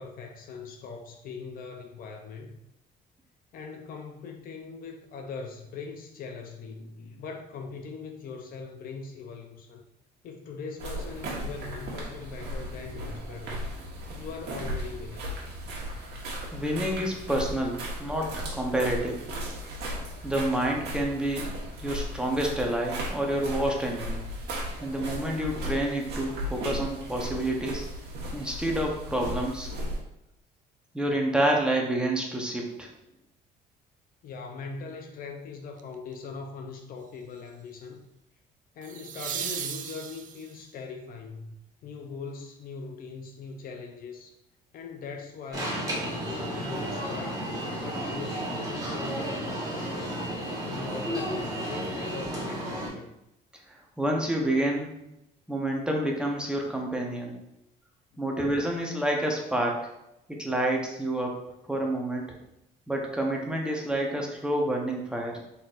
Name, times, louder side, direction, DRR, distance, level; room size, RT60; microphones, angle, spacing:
voice 1, 0.0-2.6 3.5-9.8 10.2-13.7 14.2-15.3 34.2-38.0 38.8-41.6 41.8-44.4 44.7-47.4 47.8-50.2 50.6-53.1 58.1-58.3, left 4 dB, 60° left, 4 dB, 0.6 m, -41 dB
sound 1, 10.8-30.0, equal, 80° right, 1.3 m, -36 dB
voice 2, 16.5-19.2 20.2-21.5 21.8-24.2 24.8-27.9 28.3-29.7 30.9-32.9 53.7-54.9 55.5-57.4 58.2-59.9 60.3-61.3 61.7-62.4 62.9-65.4, right 1 dB, 5° right, 0 dB, 0.8 m, -28 dB
sound 2, 35.8-36.1 38.8-40.7 43.6-43.7, right 8 dB, 50° right, 0.4 m, -36 dB
Alarm, 45.5-52.9, equal, 20° right, 1.2 m, -33 dB
4.0 x 4.0 x 2.5 m, 0.86 s
cardioid pair, 110°, 17 cm